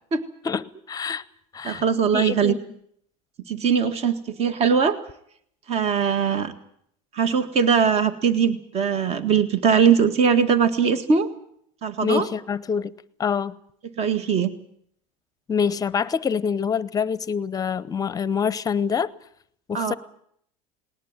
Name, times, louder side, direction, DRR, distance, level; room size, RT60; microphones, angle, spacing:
voice 1, 0.4-1.2 1.5-1.8 2.1-2.6 12.0-12.9 13.2-13.6 15.5-19.1 19.7-19.9, left 6 dB, 20° left, 0.8 m, -25 dB
voice 2, 1.6-2.5 3.5-5.0 5.7-6.5 7.1-11.3 11.8-12.3 14.0-14.5 19.7-20.0, right 6 dB, 40° right, 1.8 m, -21 dB
19.5 x 19.0 x 8.9 m
supercardioid pair, 125°, 17 cm